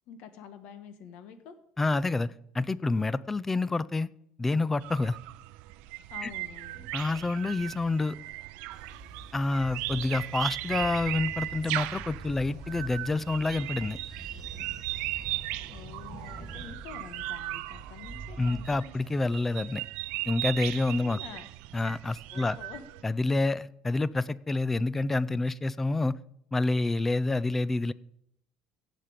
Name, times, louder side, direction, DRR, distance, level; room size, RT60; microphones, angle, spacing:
voice 1, 0.1-1.6 6.1-6.9 15.7-18.9 21.0-21.4 22.3-22.8, left 7 dB, 65° left, 10 dB, 1.3 m, -47 dB
voice 2, 1.8-4.1 4.4-5.2 6.2-6.3 6.9-8.2 9.3-14.0 18.4-19.8 20.3-21.2 21.7-22.6 23.0-26.2 26.5-27.9, left 2 dB, 10° left, 19 dB, 0.3 m, -28 dB
sound 1, 4.8-23.0, right 18 dB, 80° right, 0.5 m, -37 dB
Train, 8.7-18.7, right 2 dB, 15° right, 2.5 m, -45 dB
16.5 x 5.9 x 5.0 m, 0.73 s
cardioid pair, 145°, 2 cm